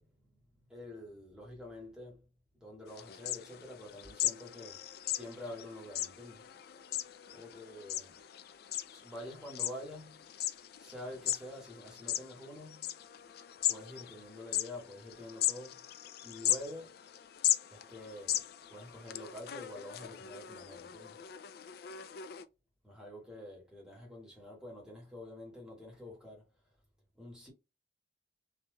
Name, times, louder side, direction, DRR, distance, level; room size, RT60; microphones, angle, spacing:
voice 1, 0.0-2.3 2.5-4.8 5.1-6.5 7.3-8.1 8.9-10.3 10.8-12.9 13.6-15.8 16.2-17.0 17.7-21.2 22.8-26.5 27.2-27.5, left 1 dB, 5° right, 1.6 m, -47 dB
sound 1, 2.9-22.5, left 13 dB, 60° left, 0.3 m, -38 dB
3.3 x 3.0 x 2.2 m
head